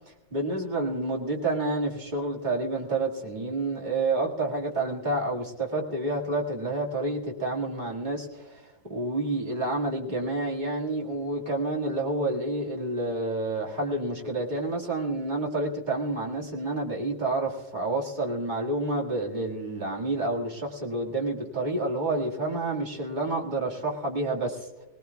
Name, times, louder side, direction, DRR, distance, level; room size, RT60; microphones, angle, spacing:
voice 1, 0.3-8.6 8.9-24.7, right 2 dB, 25° right, -2 dB, 2.0 m, -29 dB
24.0 x 18.5 x 2.3 m, 1.2 s
omnidirectional pair, 2.1 m